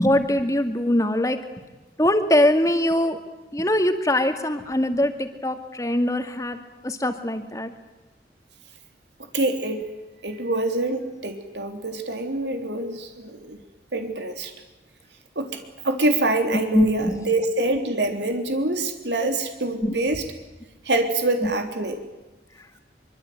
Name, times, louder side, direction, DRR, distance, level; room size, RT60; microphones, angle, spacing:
voice 1, 0.0-1.4 2.0-3.2 3.5-6.6 6.8-7.7 16.5-17.2 19.2-19.3 19.8-19.9 21.4-21.5, left 1 dB, 20° left, 7 dB, 2.3 m, -22 dB
voice 2, 9.3-9.8 10.2-13.6 13.9-14.5 15.4-15.5 15.8-20.2 20.9-22.0, right 2 dB, 85° right, 5 dB, 3.6 m, -25 dB
24.5 x 24.5 x 9.4 m, 1.1 s
head